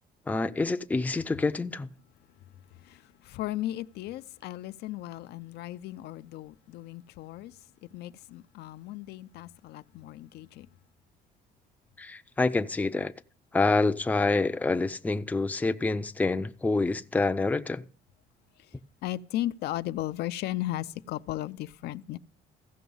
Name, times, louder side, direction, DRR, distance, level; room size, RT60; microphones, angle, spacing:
voice 1, 0.3-1.9 12.0-13.1 13.5-17.8, left 3 dB, 10° left, 0.5 m, -27 dB
voice 2, 2.8-10.7 18.6-18.7 19.0-22.2, left 14 dB, 75° left, 0.5 m, -36 dB
15.0 x 6.0 x 5.5 m
cardioid pair, 110°, 17 cm